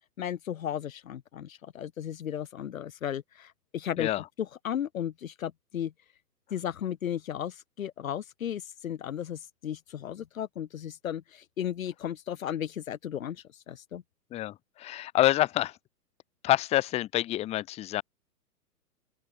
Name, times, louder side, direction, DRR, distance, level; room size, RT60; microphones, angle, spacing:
voice 1, 0.2-4.1 4.4-5.9 6.5-14.0, left 10 dB, 55° left, 1.5 m, -35 dB
voice 2, 14.3-15.8 16.4-18.0, left 14 dB, 15° left, 1.1 m, -27 dB
open air
figure-of-eight pair, 120°, 49 cm